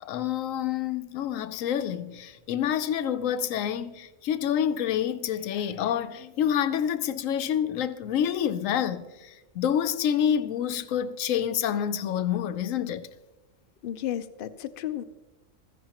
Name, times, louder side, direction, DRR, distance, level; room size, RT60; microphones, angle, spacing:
voice 1, 0.0-13.1, left 9 dB, 85° left, 1.0 m, -28 dB
voice 2, 13.8-15.0, left 11 dB, 60° left, 0.6 m, -33 dB
16.0 x 13.5 x 2.9 m
omnidirectional pair, 1.3 m